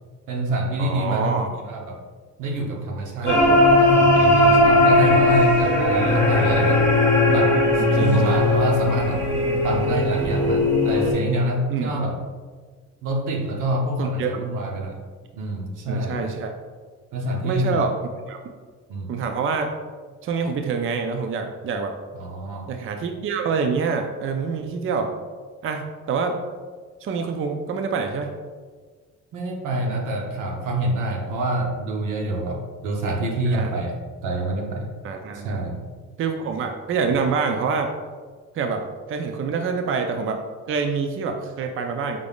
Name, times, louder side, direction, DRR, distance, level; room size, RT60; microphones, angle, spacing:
voice 1, 0.3-2.0 2.4-6.8 7.3-9.2 9.6-12.1 13.0-14.9 15.3-16.2 17.1-17.8 18.9-19.1 22.1-22.7 29.3-34.9 35.3-35.8, right 1 dB, 85° right, 0 dB, 0.8 m, -26 dB
voice 2, 0.8-1.5 3.2-3.7 7.5-8.3 11.7-11.9 14.0-14.3 15.9-16.5 17.4-17.9 18.3-18.4 19.1-19.7 20.2-21.9 22.7-25.1 25.6-26.4 27.0-28.3 33.5-33.7 35.0-35.6 36.2-37.9 38.5-42.2, right 5 dB, 45° right, 5 dB, 0.4 m, -26 dB
sound 1, 3.3-11.1, left 1 dB, 10° left, 1.4 m, -18 dB
5.1 x 3.4 x 2.3 m, 1.5 s
cardioid pair, 90°, 30 cm